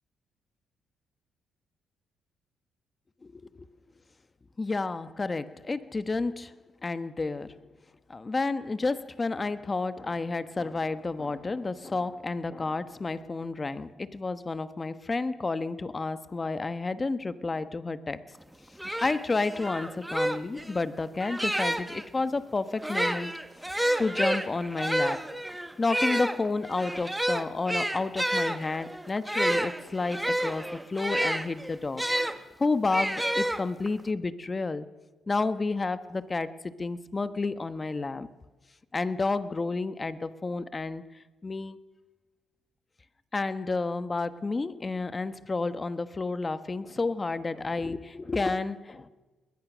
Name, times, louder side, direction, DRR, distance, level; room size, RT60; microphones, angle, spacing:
voice 1, 3.2-3.6 4.6-7.6 8.1-18.2 19.0-23.3 23.7-25.3 25.8-32.0 32.6-34.9 35.3-38.3 38.9-41.0 41.4-41.8 43.3-49.1, left 3 dB, 25° left, 12 dB, 1.2 m, -31 dB
sound 1, 18.4-18.5 18.8-22.0 22.7-32.4 32.9-34.0, right 1 dB, 5° right, 1.4 m, -29 dB
21.0 x 20.0 x 6.3 m, 1.2 s
cardioid pair, 90°, 0 cm